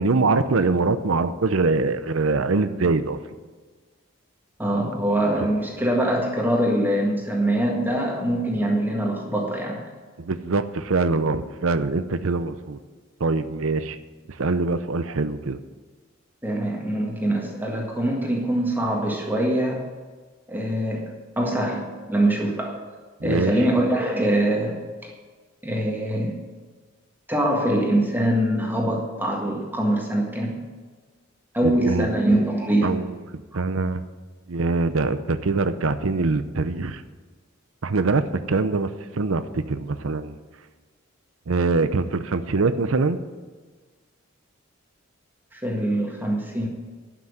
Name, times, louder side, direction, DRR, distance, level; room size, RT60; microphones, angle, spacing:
voice 1, 0.0-3.2 4.9-5.0 5.3-5.5 10.2-12.8 13.2-14.0 14.3-15.6 23.2-23.6 31.6-32.1 32.8-33.2 33.5-34.0 34.5-37.0 37.8-40.4 41.5-43.2, right 3 dB, 75° right, 11 dB, 0.7 m, -23 dB
voice 2, 4.6-9.8 16.4-19.9 20.5-21.1 21.4-22.8 23.2-25.1 25.6-26.4 27.3-30.6 31.5-33.0 33.5-33.6 45.5-46.7, right 1 dB, 10° right, 0 dB, 1.6 m, -23 dB
12.0 x 6.1 x 9.4 m, 1.4 s
head